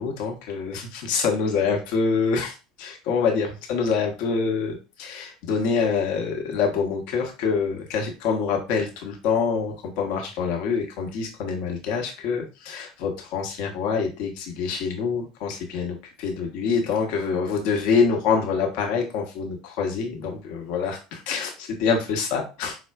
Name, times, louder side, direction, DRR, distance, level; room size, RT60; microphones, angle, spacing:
voice 1, 0.0-22.8, left 5 dB, 55° left, 1 dB, 0.8 m, -26 dB
4.6 x 2.1 x 2.3 m, 0.31 s
figure-of-eight pair, 70°, 2 cm